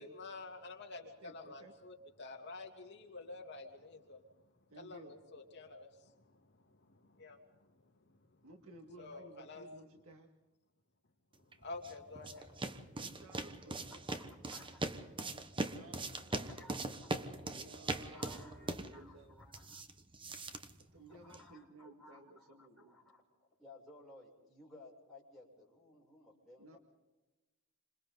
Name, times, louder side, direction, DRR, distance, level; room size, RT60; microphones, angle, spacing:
voice 1, 0.0-4.2 4.8-6.6 6.8-7.4 9.0-9.6 11.6-12.5, left 3 dB, 50° left, 1 dB, 2.9 m, -49 dB
voice 2, 1.0-1.7 4.7-5.2 8.4-10.3 13.0-14.0 15.6-16.4 17.5-19.4 20.8-23.0 26.6-26.8, right 2 dB, 70° right, 3 dB, 2.0 m, -56 dB
sound 1, 11.5-21.5, right 2 dB, 25° right, 1.1 m, -42 dB
voice 3, 13.9-15.1 15.6-19.8 20.9-26.8, left 2 dB, ahead, -6 dB, 7.5 m, -59 dB
28.5 x 26.5 x 4.0 m, 1.1 s
head